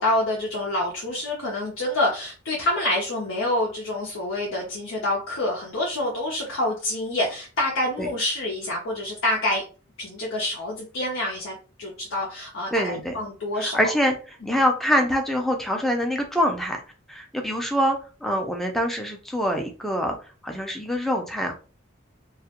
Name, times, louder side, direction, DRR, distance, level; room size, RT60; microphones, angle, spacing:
voice 1, 0.0-9.6 10.0-13.9 14.4-14.6, left 1 dB, 85° left, -3 dB, 0.6 m, -27 dB
voice 2, 12.7-13.2 13.6-14.2 14.4-16.8 17.1-20.2 20.4-21.5, equal, ahead, 3 dB, 0.4 m, -24 dB
2.3 x 2.1 x 2.8 m, 0.36 s
head